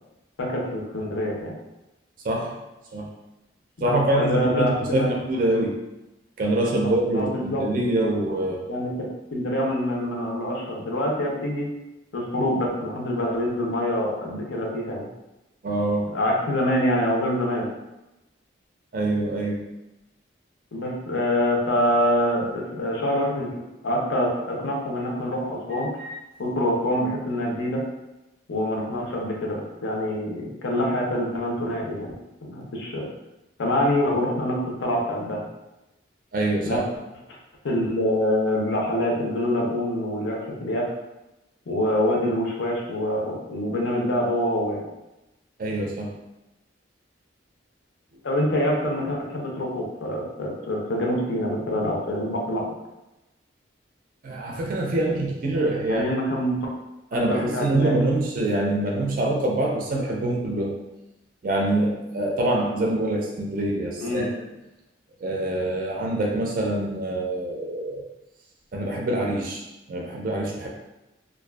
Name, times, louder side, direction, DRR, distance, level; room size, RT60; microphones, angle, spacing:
voice 1, 0.4-1.5 3.8-5.1 7.1-7.6 8.7-8.9 9.3-11.7 12.1-15.1 16.1-17.6 20.7-25.9 26.4-27.8 28.5-32.1 32.4-33.1 33.6-35.5 36.6-36.8 37.6-40.9 41.7-44.8 48.2-52.7 55.9-56.6 57.2-57.9 64.0-64.3, left 1 dB, 80° left, -1 dB, 0.5 m, -25 dB
voice 2, 2.2-2.6 2.9-3.1 3.8-5.8 6.4-8.7 15.6-16.1 18.9-19.6 25.7-26.1 36.3-36.8 45.6-46.1 54.2-56.0 57.1-60.7 61.4-64.2 65.2-68.1 68.7-70.7, right 1 dB, 45° right, -1 dB, 0.3 m, -25 dB
2.5 x 2.3 x 2.2 m, 0.98 s
head